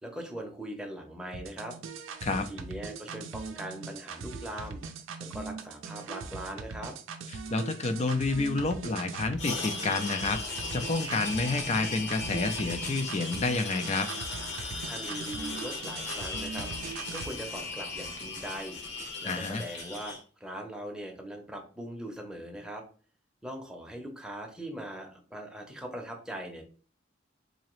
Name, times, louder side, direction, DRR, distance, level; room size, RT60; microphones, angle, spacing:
voice 1, 0.0-1.8 2.3-4.8 5.2-6.9 14.8-22.8 23.4-26.6, right 1 dB, 5° right, 1 dB, 0.7 m, -41 dB
sound 1, 1.3-17.3, right 4 dB, 75° right, 0.5 m, -41 dB
voice 2, 7.3-14.1 19.2-19.6, left 3 dB, 35° left, 8 dB, 0.4 m, -29 dB
sound 2, 9.4-20.2, left 3 dB, 65° left, 1.1 m, -37 dB
3.9 x 2.8 x 3.0 m, 0.40 s
head